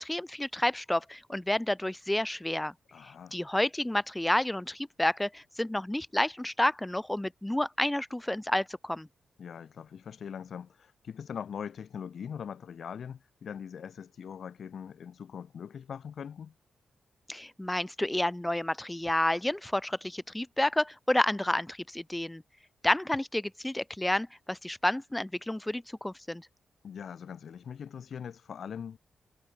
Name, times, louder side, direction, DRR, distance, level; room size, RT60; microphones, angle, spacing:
voice 1, 0.0-2.7 3.3-9.1 17.3-22.4 22.8-26.5, left 1 dB, 10° left, 0.5 m, -30 dB
voice 2, 2.9-3.4 9.4-16.5 26.8-29.0, left 7 dB, 65° left, 0.9 m, -41 dB
cardioid pair, 95°, 0 cm